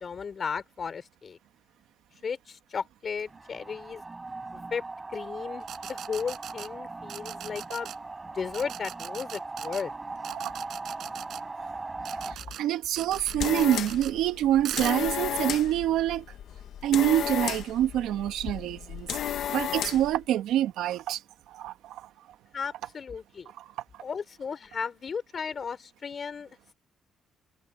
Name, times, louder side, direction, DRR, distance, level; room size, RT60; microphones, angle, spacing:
voice 1, 0.0-1.4 2.2-4.0 4.5-4.8 5.1-7.9 8.3-9.9 12.4-12.5 22.5-23.5 24.0-26.5, left 6 dB, 35° left, 4.6 m, -35 dB
sound 1, 3.3-12.4, right 3 dB, 20° right, 5.8 m, -39 dB
sound 2, 5.6-6.7 7.1-8.0 8.5-9.8 10.2-11.4 12.0-12.6 13.0-14.1 14.6-15.0, right 10 dB, 65° right, 6.5 m, -40 dB
voice 2, 12.3-16.3 16.8-19.1 19.5-21.2 21.5-22.1 23.6-24.0, right 12 dB, 85° right, 1.9 m, -26 dB
sound 3, 13.0-20.2, left 10 dB, 65° left, 1.6 m, -33 dB
cardioid pair, 135°, 0 cm